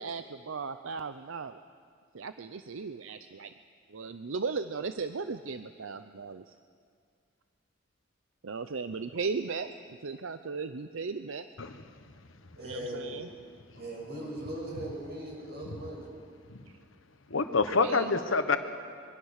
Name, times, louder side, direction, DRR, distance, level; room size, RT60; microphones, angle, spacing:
voice 1, 0.0-1.6 2.1-3.5 3.9-6.5 8.4-9.7 10.0-11.5 12.6-13.3 16.7-16.8 17.8-18.1, right 4 dB, 70° right, 10 dB, 0.6 m, -36 dB
voice 2, 12.5-13.2 13.7-16.1, right 1 dB, 55° right, -2 dB, 7.6 m, -39 dB
voice 3, 17.3-18.6, left 4 dB, 70° left, 8 dB, 1.3 m, -26 dB
25.0 x 23.5 x 6.5 m, 2.1 s
head